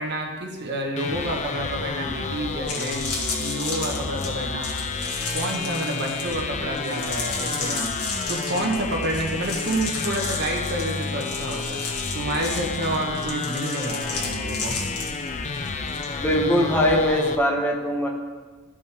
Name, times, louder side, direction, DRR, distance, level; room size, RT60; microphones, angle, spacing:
voice 1, 0.0-3.1 3.4-4.9 5.3-7.9 8.3-11.8 12.1-14.7, right 1 dB, 50° right, 1 dB, 1.3 m, -29 dB
sound 1, 1.0-17.4, left 4 dB, 30° left, 0.5 m, -31 dB
sound 2, 2.7-16.1 16.3-16.7, left 4 dB, 75° left, 1.8 m, -33 dB
voice 2, 16.2-18.1, equal, 10° left, -1 dB, 1.0 m, -21 dB
14.0 x 5.3 x 3.5 m, 1.4 s
head